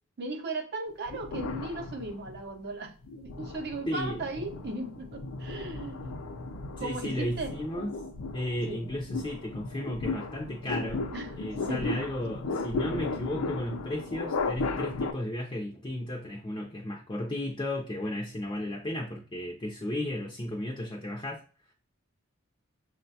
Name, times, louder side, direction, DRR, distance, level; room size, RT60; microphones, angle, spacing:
voice 1, 0.2-2.9 3.2-6.2 6.8-7.5 8.7-8.9 11.1-11.3 11.7-12.0, right 2 dB, 50° right, 6 dB, 0.6 m, -37 dB
sound 1, 1.1-2.5 3.0-15.1, left 3 dB, 75° left, 0.5 m, -35 dB
voice 2, 3.9-4.4 6.8-7.9 8.3-11.1 11.4-21.4, left 1 dB, 20° left, -2 dB, 0.4 m, -34 dB
6.2 x 2.2 x 2.6 m, 0.39 s
head